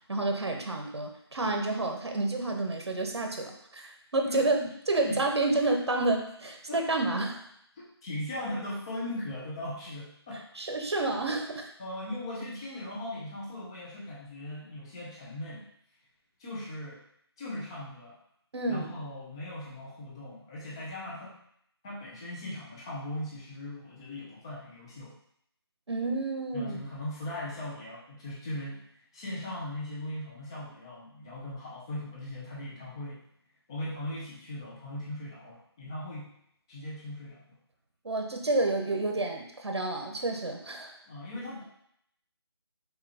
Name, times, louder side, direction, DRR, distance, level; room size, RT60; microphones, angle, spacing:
voice 1, 0.1-4.6 4.9-7.4 10.6-11.7 18.5-18.9 25.9-26.8 38.0-40.9, right 2 dB, 75° right, 3 dB, 0.9 m, -29 dB
voice 2, 4.2-4.7 5.1-5.2 6.7-6.8 7.8-10.4 11.8-15.7 16.4-17.0 17.4-18.2 18.7-21.3 21.8-25.1 26.5-28.8 29.1-33.2 33.7-36.3 36.7-37.4 41.1-41.6, left 1 dB, 10° left, -7 dB, 0.5 m, -39 dB
5.8 x 2.4 x 2.8 m, 0.71 s
figure-of-eight pair, 165°, 14 cm